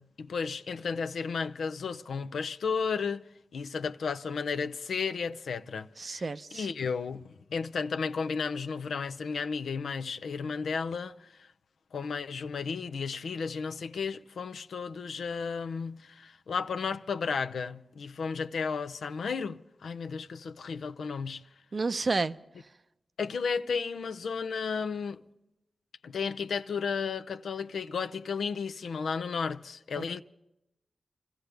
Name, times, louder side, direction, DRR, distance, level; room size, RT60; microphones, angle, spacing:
voice 1, 0.0-3.2 3.5-6.2 6.5-11.5 11.9-21.5 23.2-25.2 26.0-30.2, left 5 dB, 85° left, 0.5 m, -33 dB
voice 2, 6.0-6.7 21.7-22.4 30.0-30.2, right 3 dB, 55° right, 0.6 m, -31 dB
28.0 x 15.0 x 3.4 m
cardioid pair, 40°, 0 cm